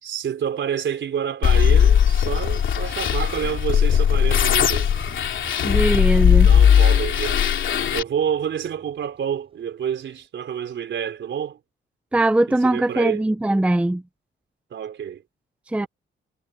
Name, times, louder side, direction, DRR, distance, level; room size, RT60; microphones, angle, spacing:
voice 1, 0.0-4.9 6.4-7.4 7.9-11.6 12.6-13.2 14.7-15.2 15.8-15.9, right 8 dB, 65° right, 4.0 m, -28 dB
sound 1, 1.4-8.0, left 8 dB, 65° left, 2.9 m, -18 dB
Motorcycle, 2.6-10.2, right 4 dB, 25° right, 7.7 m, -45 dB
voice 2, 5.6-6.5 12.1-14.0 15.7-15.9, right 1 dB, 5° right, 0.6 m, -20 dB
wide cardioid pair, 175°, 21 cm